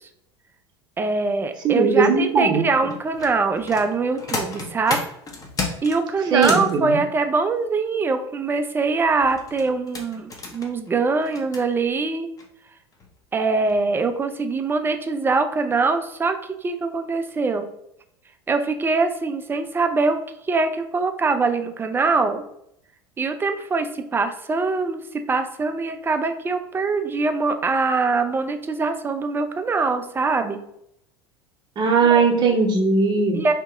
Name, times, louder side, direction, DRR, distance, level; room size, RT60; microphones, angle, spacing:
voice 1, 1.0-5.0 5.8-12.3 13.3-17.7 18.5-20.2 20.5-22.4 23.2-30.6 32.0-32.2 33.3-33.5, right 4 dB, 15° right, 8 dB, 0.4 m, -23 dB
voice 2, 1.6-2.6 6.3-7.0 31.8-33.4, right 4 dB, 30° right, 0 dB, 0.8 m, -19 dB
sound 1, 2.9-6.7 9.2-11.6 12.4-12.5 12.9-13.1 13.6-13.8 14.1-14.2, left 3 dB, 25° left, 0.7 m, -32 dB
2.8 x 2.8 x 3.5 m, 0.75 s
figure-of-eight pair, 80°, 15 cm